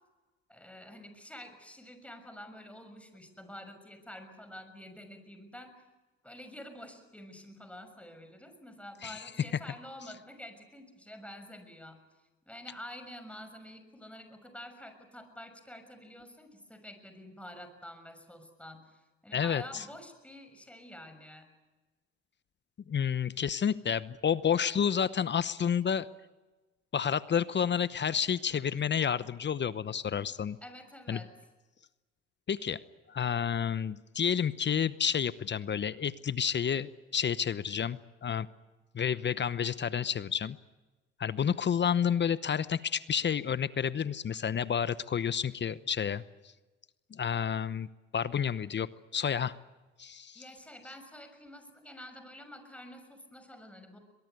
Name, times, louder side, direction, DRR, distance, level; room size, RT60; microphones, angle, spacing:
voice 1, 0.5-5.8 6.2-12.0 12.5-21.5 30.6-31.3 50.3-54.0, left 1 dB, 5° left, 8 dB, 6.4 m, -48 dB
voice 2, 19.3-19.8 22.9-26.1 26.9-30.6 31.1-31.2 32.5-32.8 33.1-38.5 38.9-40.6 41.2-46.2 47.1-47.9 48.1-49.5 50.0-50.4, left 8 dB, 40° left, 16 dB, 0.9 m, -30 dB
23.0 x 21.0 x 9.6 m, 1.2 s
supercardioid pair, 70°, 29 cm